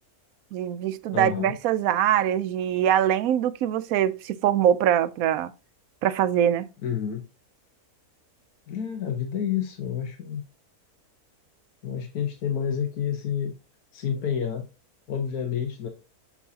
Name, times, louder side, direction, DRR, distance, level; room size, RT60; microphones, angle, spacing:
voice 1, 0.5-5.5 6.0-6.7, right 10 dB, 75° right, 1.0 m, -23 dB
voice 2, 1.1-1.6 6.8-7.3 8.7-10.4 11.8-13.6 13.9-14.7 15.1-15.9, left 8 dB, 80° left, 1.4 m, -29 dB
7.1 x 5.7 x 2.7 m
omnidirectional pair, 1.6 m